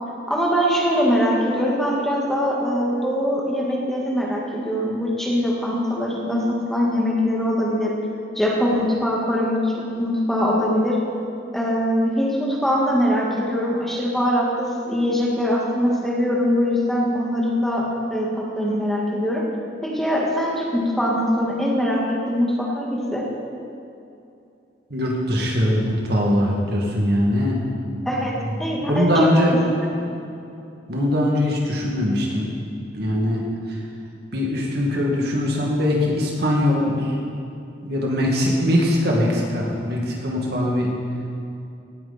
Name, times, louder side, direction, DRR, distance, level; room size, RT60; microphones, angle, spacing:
voice 1, 0.3-8.0 8.4-11.0 11.5-19.4 19.8-23.3 28.0-28.3 28.6-29.6 30.1-30.2, equal, ahead, -4 dB, 1.9 m, -22 dB
voice 2, 24.9-27.6 28.5-28.6 28.9-29.5 30.9-32.5 32.9-33.4 33.7-33.8 34.3-37.2 37.8-40.9, left 1 dB, 65° right, -2 dB, 2.3 m, -21 dB
18.0 x 9.4 x 4.4 m, 2.6 s
head